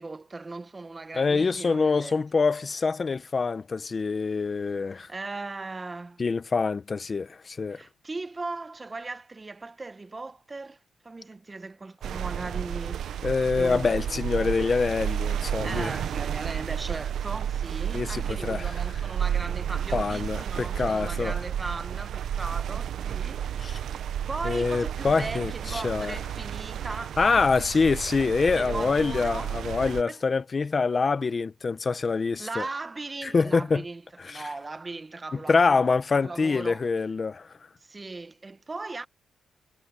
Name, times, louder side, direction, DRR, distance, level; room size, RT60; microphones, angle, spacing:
voice 1, 0.0-2.2 4.9-6.2 7.7-10.8 11.0-13.3 13.5-14.5 15.5-24.0 24.3-27.4 28.6-29.5 30.1-30.2 32.4-36.9 37.8-39.1, right 3 dB, 25° right, 1.3 m, -38 dB
voice 2, 1.1-5.1 6.2-7.8 13.2-15.9 17.9-18.8 19.9-21.4 23.6-23.8 24.4-26.2 27.2-32.6 33.2-33.8 34.2-34.5 35.3-37.6, left 4 dB, 35° left, 1.0 m, -25 dB
sound 1, 12.0-30.0, right 9 dB, 75° right, 1.0 m, -32 dB
cardioid pair, 100°, 0 cm